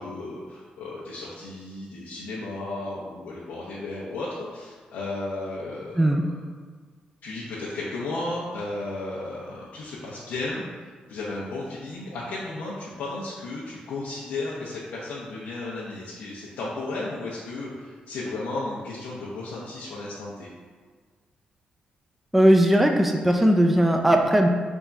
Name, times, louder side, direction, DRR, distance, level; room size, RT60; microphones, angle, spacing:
voice 1, 0.0-6.3 7.2-10.6 11.1-20.5, left 2 dB, 90° left, -7 dB, 0.6 m, -34 dB
voice 2, 22.3-24.5, right 1 dB, 5° right, 3 dB, 0.3 m, -18 dB
3.5 x 2.3 x 4.0 m, 1.5 s
cardioid pair, 80°, 3 cm